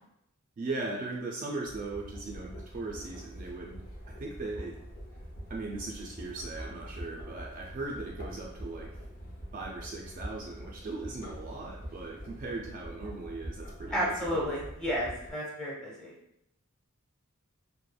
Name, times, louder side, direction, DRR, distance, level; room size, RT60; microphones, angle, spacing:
voice 1, 0.6-3.8 4.1-4.8 5.5-8.9 9.5-14.4, right 3 dB, 40° right, -2 dB, 0.3 m, -38 dB
sound 1, 1.6-15.3, equal, 45° left, 0.7 m, -44 dB
voice 2, 13.9-16.1, equal, 5° left, -6 dB, 0.6 m, -32 dB
3.1 x 2.1 x 2.2 m, 0.78 s
head